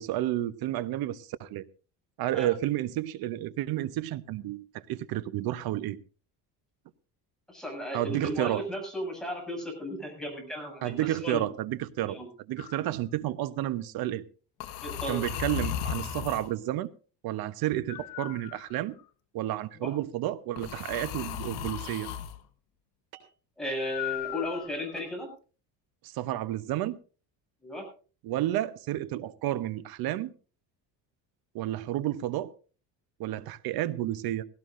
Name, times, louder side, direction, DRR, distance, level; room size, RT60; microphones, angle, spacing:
voice 1, 0.0-1.7 2.2-6.0 7.9-8.6 10.8-12.2 12.5-14.2 15.1-16.9 17.2-18.9 19.3-22.1 26.0-27.0 28.2-30.3 31.5-32.5 33.2-34.5, right 14 dB, 60° right, 1.0 m, -31 dB
voice 2, 7.5-11.5 12.1-12.3 14.8-15.2 19.8-19.9 23.6-25.3 27.6-27.9, left 1 dB, ahead, 6.9 m, -35 dB
sound 1, 12.6-12.9 14.6-16.5 17.9-19.0 20.6-22.3 23.8-25.0, left 10 dB, 65° left, 1.3 m, -36 dB
sound 2, 20.7-20.8 21.9-22.1 23.1-23.3 25.0-25.1 25.4-25.5, right 12 dB, 90° right, 3.3 m, -50 dB
18.0 x 17.0 x 2.6 m
cardioid pair, 140°, 41 cm